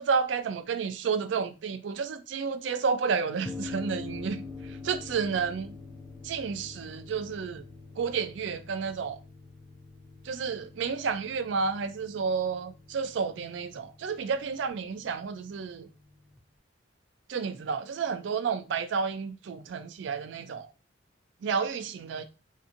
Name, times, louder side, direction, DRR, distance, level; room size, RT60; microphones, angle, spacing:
voice 1, 0.0-4.4 4.7-5.8 6.2-7.6 8.0-9.2 10.3-15.9 17.3-20.7 21.4-22.2, right 5 dB, 75° right, 0.3 m, -31 dB
sound 1, 3.5-16.4, left 3 dB, ahead, 0.4 m, -45 dB
2.7 x 2.5 x 2.5 m
head